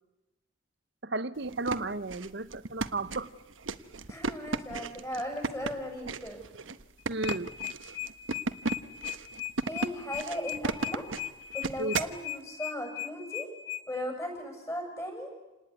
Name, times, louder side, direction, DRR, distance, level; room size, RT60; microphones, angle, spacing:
voice 1, 1.0-3.3 7.1-7.5 11.8-11.9, right 2 dB, 60° right, 14 dB, 1.1 m, -33 dB
sound 1, 1.4-12.2, right 3 dB, 85° right, 1.2 m, -35 dB
voice 2, 4.1-6.4 9.7-11.0 11.5-13.5 13.9-15.3, equal, 15° left, 2 dB, 7.6 m, -37 dB
sound 2, 7.0-13.8, left 14 dB, 65° left, 3.0 m, -37 dB
28.0 x 19.5 x 9.6 m, 1.0 s
head